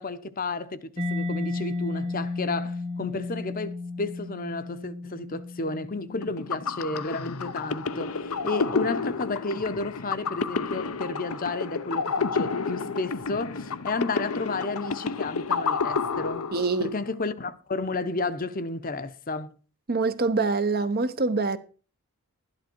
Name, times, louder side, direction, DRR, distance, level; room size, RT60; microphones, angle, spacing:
voice 1, 0.0-16.5 16.8-19.5, left 3 dB, 40° left, 0.8 m, -32 dB
Mallet percussion, 1.0-8.5, left 3 dB, 25° right, 1.2 m, -34 dB
sound 1, 6.2-17.0, left 5 dB, 85° left, 0.8 m, -30 dB
voice 2, 16.5-16.9 19.9-21.6, right 3 dB, 45° right, 0.8 m, -25 dB
12.5 x 11.0 x 4.5 m
head